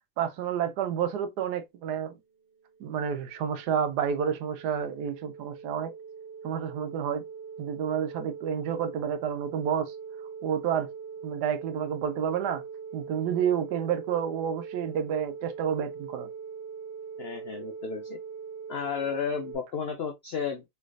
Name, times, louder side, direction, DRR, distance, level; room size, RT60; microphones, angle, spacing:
voice 1, 0.2-2.1 2.8-5.9 6.4-7.2 7.6-9.9 10.4-10.9 11.2-12.6 12.9-16.3, right 8 dB, 80° right, 1.2 m, -30 dB
sound 1, 2.5-19.5, right 6 dB, 50° right, 1.2 m, -42 dB
voice 2, 17.2-18.2 18.7-20.6, left 7 dB, 85° left, 0.5 m, -33 dB
3.2 x 3.2 x 2.4 m
omnidirectional pair, 1.7 m